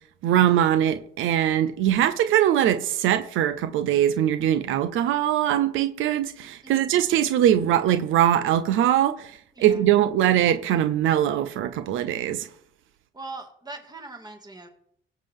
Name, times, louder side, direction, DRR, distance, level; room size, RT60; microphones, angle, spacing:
voice 1, 0.2-9.3 9.6-12.5, right 11 dB, 85° right, 0.7 m, -22 dB
voice 2, 6.6-7.0 9.6-9.8 13.1-14.7, right 3 dB, 20° right, 2.2 m, -40 dB
17.0 x 7.4 x 3.6 m
cardioid pair, 90°, 20 cm